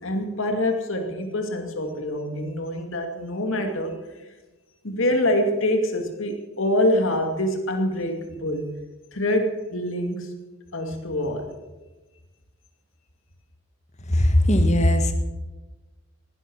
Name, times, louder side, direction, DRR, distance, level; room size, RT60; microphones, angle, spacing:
voice 1, 0.0-4.0 4.8-8.7 9.1-10.3 10.7-11.6, left 1 dB, 70° left, 4 dB, 2.5 m, -25 dB
voice 2, 14.1-15.1, left 1 dB, 30° left, 7 dB, 1.6 m, -18 dB
18.5 x 11.0 x 6.4 m, 1.1 s
head